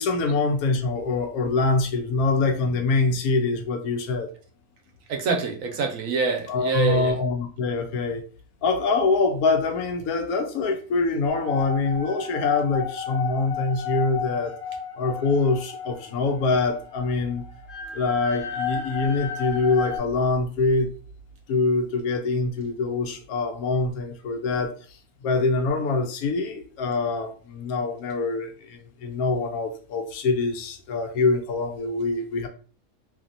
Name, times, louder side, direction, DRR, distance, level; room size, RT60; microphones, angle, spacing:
voice 1, 0.0-4.3 6.5-8.2 8.6-14.5 15.0-17.4 17.9-20.9 21.5-24.7 25.2-32.5, left 3 dB, 80° left, 5 dB, 1.1 m, -24 dB
voice 2, 5.1-7.2, right 4 dB, 70° right, 3 dB, 1.0 m, -26 dB
sound 1, 11.3-20.0, left 5 dB, 55° left, 0.9 m, -33 dB
2.8 x 2.7 x 2.5 m, 0.39 s
omnidirectional pair, 1.5 m